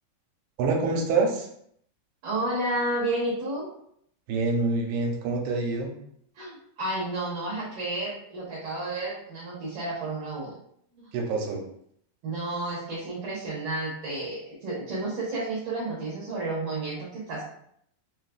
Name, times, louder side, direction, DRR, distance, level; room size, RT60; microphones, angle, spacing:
voice 1, 0.6-1.5 4.3-5.9 11.1-11.6, right 3 dB, 90° right, 1 dB, 2.6 m, -26 dB
voice 2, 2.2-3.7 6.4-10.5 11.0-11.1 12.2-17.4, right 2 dB, 65° right, -7 dB, 2.3 m, -31 dB
6.7 x 2.4 x 2.3 m, 0.69 s
omnidirectional pair, 4.6 m